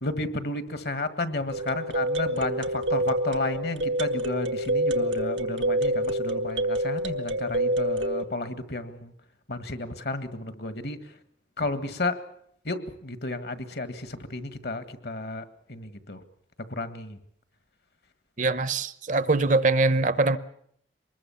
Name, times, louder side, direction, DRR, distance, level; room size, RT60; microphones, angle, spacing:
voice 1, 0.0-9.1 9.5-11.0 11.6-12.2 12.6-16.2 16.7-17.2, left 2 dB, 60° left, 1.7 m, -32 dB
sound 1, 1.5-8.2, right 1 dB, 90° right, 1.6 m, -27 dB
voice 2, 18.4-20.4, right 3 dB, 45° right, 0.8 m, -23 dB
24.5 x 21.0 x 7.1 m
head